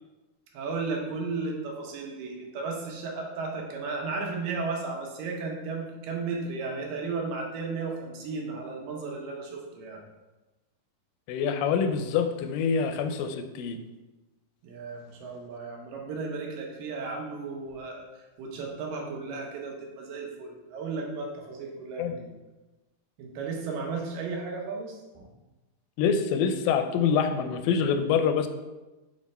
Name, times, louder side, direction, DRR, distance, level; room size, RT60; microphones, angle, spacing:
voice 1, 0.5-10.0 14.6-22.3 23.2-25.3, right 4 dB, 80° right, 0 dB, 2.7 m, -34 dB
voice 2, 11.3-13.8 22.0-22.1 26.0-28.5, left 6 dB, 85° left, 8 dB, 2.2 m, -25 dB
7.4 x 3.3 x 4.2 m, 1.1 s
omnidirectional pair, 3.9 m